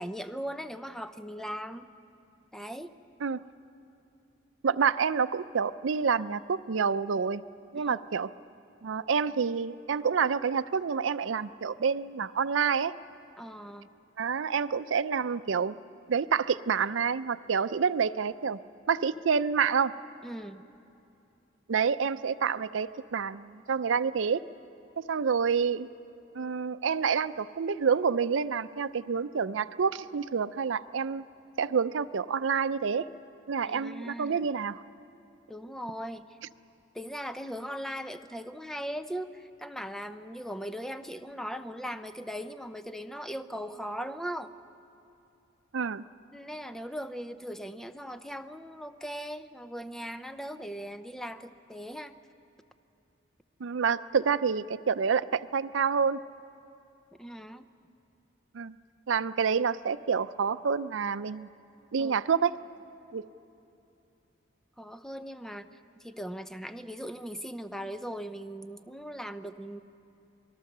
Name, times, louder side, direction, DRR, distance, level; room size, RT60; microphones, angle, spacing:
voice 1, 0.0-1.9 2.5-2.9 7.7-8.0 13.4-13.9 20.2-20.6 33.7-34.4 35.5-36.3 36.9-44.5 46.3-52.1 57.1-57.7 62.0-62.2 64.8-65.7 66.0-69.8, equal, ahead, 10 dB, 0.6 m, -39 dB
voice 2, 4.6-7.4 7.7-8.3 8.8-12.9 14.2-15.8 16.1-18.6 18.9-19.9 21.7-24.4 25.0-25.9 26.3-31.2 31.6-33.1 33.5-34.8 45.7-46.0 53.6-56.2 58.5-58.8 59.1-61.5 61.9-62.6 63.1-63.2, right 6 dB, 85° right, 14 dB, 0.5 m, -28 dB
26.5 x 20.5 x 6.7 m, 2.7 s
head